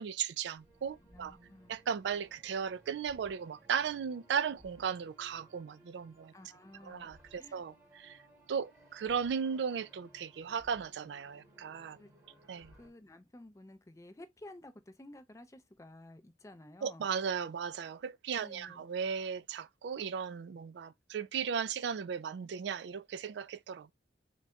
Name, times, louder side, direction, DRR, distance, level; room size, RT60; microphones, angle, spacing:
voice 1, 0.0-1.4 1.7-6.3 6.8-8.2 8.5-12.0 12.5-12.7 16.8-23.9, right 7 dB, 65° right, 0.3 m, -36 dB
sound 1, 0.6-12.9, right 1 dB, 15° right, 1.1 m, -61 dB
voice 2, 1.1-1.7 6.3-7.6 12.0-17.1 18.4-18.8, left 1 dB, 15° left, 0.5 m, -53 dB
3.9 x 2.2 x 3.5 m
head